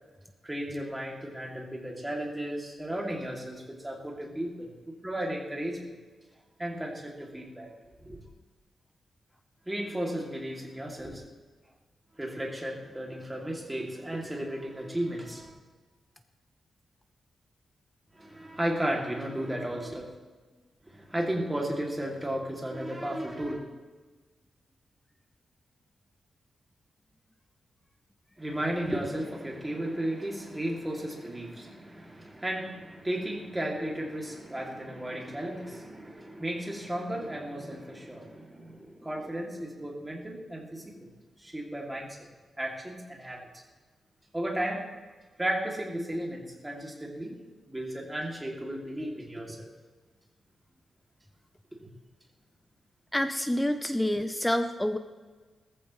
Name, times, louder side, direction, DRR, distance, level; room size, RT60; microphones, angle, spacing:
voice 1, 0.4-5.8 6.6-7.7 8.0-8.2 9.7-11.2 12.2-15.5 18.1-20.1 20.9-23.6 28.4-41.1 41.4-42.1 42.6-43.4 44.3-44.8 45.4-47.4 47.7-49.7, right 1 dB, 10° right, -1 dB, 2.5 m, -34 dB
voice 2, 53.1-55.0, left 1 dB, 5° left, 8 dB, 0.6 m, -27 dB
19.5 x 14.5 x 3.1 m, 1.4 s
wide cardioid pair, 155°, 0 cm